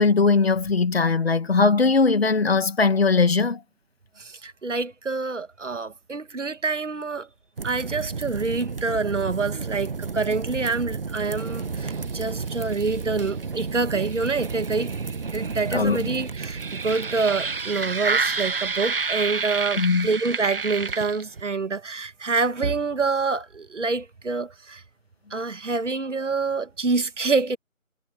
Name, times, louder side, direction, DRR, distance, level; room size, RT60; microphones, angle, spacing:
voice 1, 0.0-3.6 15.7-16.1 19.8-20.1, left 4 dB, 45° left, 2.1 m, -20 dB
voice 2, 4.2-7.3 7.6-14.9 15.3-24.8 25.3-27.6, right 4 dB, 60° right, 1.9 m, -27 dB
sound 1, 7.6-21.5, right 4 dB, 45° right, 1.3 m, -30 dB
figure-of-eight pair, 165°, 41 cm